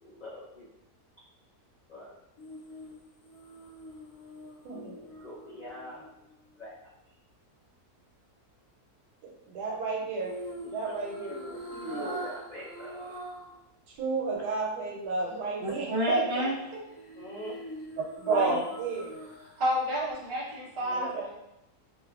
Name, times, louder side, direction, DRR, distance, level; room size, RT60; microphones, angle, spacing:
voice 1, 0.0-0.7 1.9-2.1 4.7-6.1 6.6-6.8 11.3-13.1 17.2-17.5 20.8-21.1, equal, 70° left, -9 dB, 0.4 m, -43 dB
sound 1, 2.4-6.6 10.2-13.6 13.9-14.0 16.9-19.8 20.1-20.2, equal, 85° left, 1.2 m, -43 dB
voice 2, 4.6-5.0 9.2-12.2 13.9-16.8 18.2-19.1 20.9-21.2, right 3 dB, 85° right, -1 dB, 1.2 m, -33 dB
voice 3, 15.6-16.6 18.0-18.6 19.6-21.4, right 1 dB, 50° right, -5 dB, 0.3 m, -29 dB
3.0 x 2.2 x 2.3 m, 0.86 s
omnidirectional pair, 1.6 m